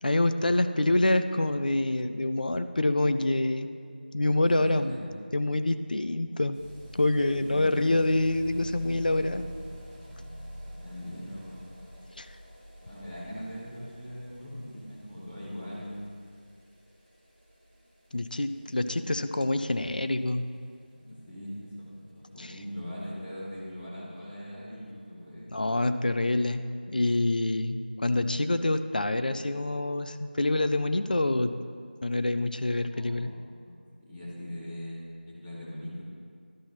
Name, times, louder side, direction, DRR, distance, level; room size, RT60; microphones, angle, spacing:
voice 1, 0.0-3.7 4.1-6.6 6.9-9.4 12.2-12.3 18.1-20.5 22.4-22.6 25.5-31.5 32.0-33.3, left 2 dB, 55° left, 10 dB, 0.4 m, -26 dB
voice 2, 4.4-5.0 7.3-7.9 10.7-11.7 12.8-16.0 18.8-19.1 20.9-25.5 32.9-36.0, equal, 10° left, -10 dB, 1.4 m, -41 dB
sound 1, 6.5-23.3 23.6-23.7 23.9-24.0 24.2-24.3 24.5-24.6 25.3-25.4, equal, 15° right, 1.7 m, -48 dB
12.5 x 5.7 x 3.0 m, 2.2 s
figure-of-eight pair, 175°, 6 cm